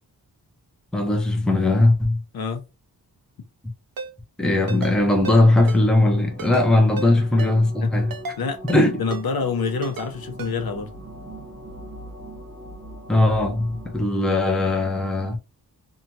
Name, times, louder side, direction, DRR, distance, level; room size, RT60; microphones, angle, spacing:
voice 1, 0.9-2.2 4.4-8.1 8.7-9.0 13.1-15.4, left 2 dB, ahead, 0.5 m, -19 dB
Ringtone, 4.0-4.1 4.7-5.0 5.2-5.4 5.7-5.8 6.4-6.7 7.0-7.1 7.4-7.5 8.1-8.4 8.7-8.8 9.1-9.2 9.8-10.1 10.4-10.5, right 5 dB, 60° right, 0.6 m, -33 dB
sound 1, 4.9-14.0, right 1 dB, 20° right, 1.0 m, -40 dB
voice 2, 8.4-10.9, left 5 dB, 65° left, 0.7 m, -27 dB
2.8 x 2.2 x 2.6 m
wide cardioid pair, 110°, 39 cm